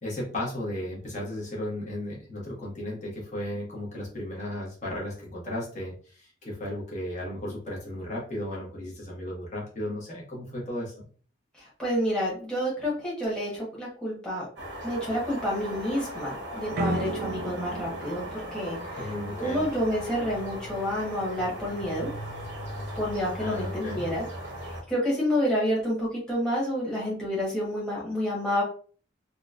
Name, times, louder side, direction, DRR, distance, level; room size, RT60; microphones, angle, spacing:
voice 1, 0.0-11.1 19.0-19.7 23.4-24.0, left 1 dB, 40° left, -4 dB, 1.0 m, -35 dB
voice 2, 11.5-14.5 14.8-18.2 18.5-22.1 22.9-24.3 24.9-28.6, equal, 5° left, -6 dB, 1.1 m, -29 dB
sound 1, 14.6-24.8, equal, 75° right, 0.9 m, -38 dB
sound 2, 16.7-19.6, right 2 dB, 50° right, 0.3 m, -34 dB
3.9 x 2.2 x 2.4 m, 0.42 s
head